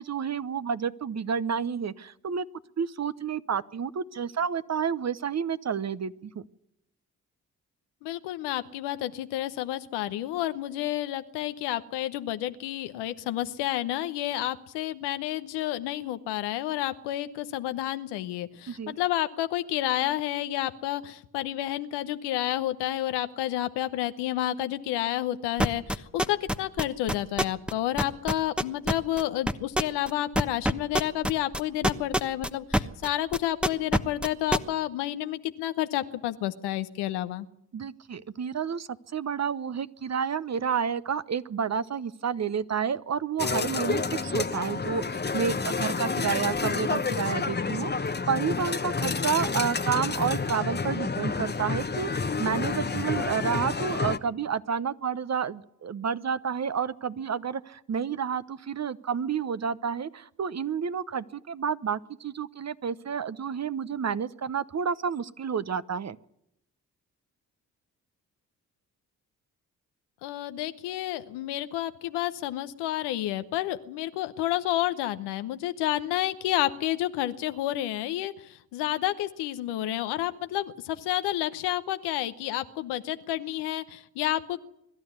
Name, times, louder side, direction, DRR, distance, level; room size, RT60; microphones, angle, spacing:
voice 1, 0.0-2.4 2.8-6.4 18.7-19.0 37.7-66.2, right 7 dB, 40° right, 15 dB, 0.9 m, -30 dB
voice 2, 8.0-37.5 70.2-84.6, left 14 dB, 85° left, 11 dB, 0.9 m, -30 dB
sound 1, 25.6-27.7 28.0-33.1 33.3-34.6, equal, 5° right, 1.1 m, -24 dB
sound 2, 43.4-54.2, left 4 dB, 25° left, 1.1 m, -29 dB
23.0 x 12.0 x 9.5 m, 0.82 s
hypercardioid pair, 40°, 40 cm